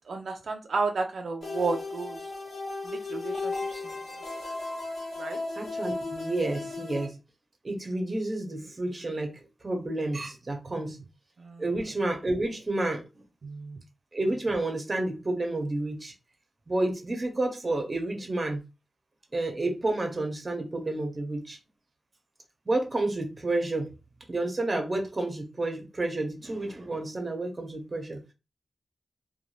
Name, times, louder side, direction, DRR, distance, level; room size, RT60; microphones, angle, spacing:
voice 1, 0.1-2.2 2.8-4.0 5.2-5.4 10.7-10.9 11.4-11.6 13.4-13.8, right 4 dB, 75° right, 0.3 m, -32 dB
sound 1, 1.4-7.1, left 3 dB, 75° left, 0.9 m, -35 dB
voice 2, 5.6-7.2 7.6-11.0 11.6-13.0 14.1-16.1 16.7-18.6 19.3-21.6 22.7-23.9 24.3-28.3, right 2 dB, 30° right, 0.7 m, -30 dB
2.5 x 2.2 x 3.0 m
wide cardioid pair, 105°, 0 cm